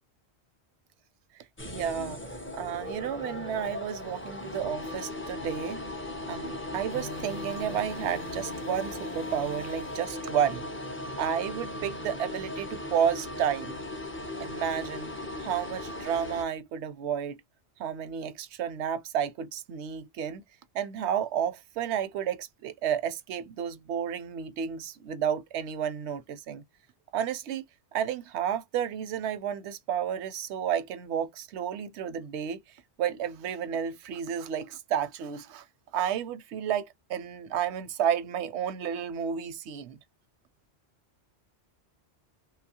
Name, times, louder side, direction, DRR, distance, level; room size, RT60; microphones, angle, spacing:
sound 1, 1.6-16.4, left 1 dB, 20° left, 0.4 m, -38 dB
voice 1, 1.6-2.2 2.5-5.8 6.3-10.7 11.1-13.8 14.4-15.1 15.4-17.4 17.8-20.4 20.7-26.6 27.1-27.6 27.9-32.6 33.0-35.6 35.9-40.0, right 9 dB, 85° right, 0.9 m, -31 dB
sound 2, 6.9-13.0 19.6-19.7, left 2 dB, 40° left, 0.8 m, -47 dB
2.9 x 2.3 x 2.7 m
omnidirectional pair, 1.1 m